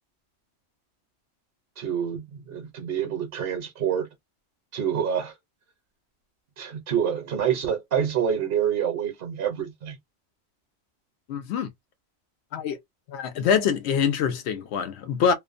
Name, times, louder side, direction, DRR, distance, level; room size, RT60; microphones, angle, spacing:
voice 1, 1.8-4.1 4.7-5.4 6.6-10.0, right 8 dB, 60° right, 0.8 m, -27 dB
voice 2, 11.3-11.7 12.5-12.8 13.1-15.3, left 7 dB, 70° left, 0.9 m, -24 dB
2.5 x 2.1 x 2.4 m
omnidirectional pair, 1.2 m